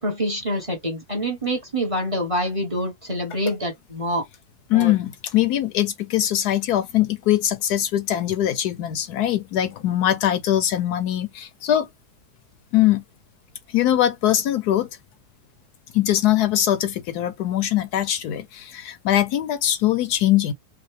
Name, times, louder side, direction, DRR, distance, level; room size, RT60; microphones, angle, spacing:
voice 1, 0.0-4.2 4.7-4.9, equal, 20° right, 1.2 m, -26 dB
voice 2, 4.7-11.9 12.7-13.0 13.7-14.9 15.9-20.5, left 12 dB, 75° left, 1.1 m, -22 dB
4.8 x 2.4 x 3.2 m
omnidirectional pair, 1.8 m